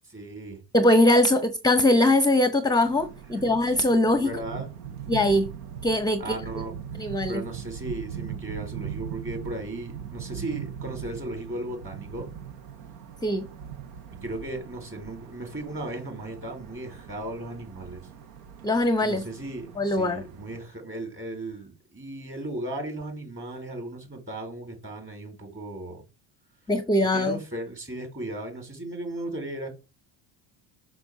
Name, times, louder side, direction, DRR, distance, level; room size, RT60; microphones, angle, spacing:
voice 1, 0.1-0.6 3.3-3.6 4.2-4.7 6.2-12.3 14.2-18.1 19.0-26.1 27.1-29.7, right 1 dB, 25° right, 4.5 m, -36 dB
voice 2, 0.7-4.3 5.1-5.5 5.8-6.4 7.0-7.4 13.2-13.5 18.6-19.2 19.8-20.2 26.7-27.4, left 1 dB, 10° left, 0.7 m, -21 dB
sound 1, 2.8-20.6, right 8 dB, 80° right, 1.1 m, -40 dB
6.2 x 6.1 x 3.9 m
supercardioid pair, 80°, 48 cm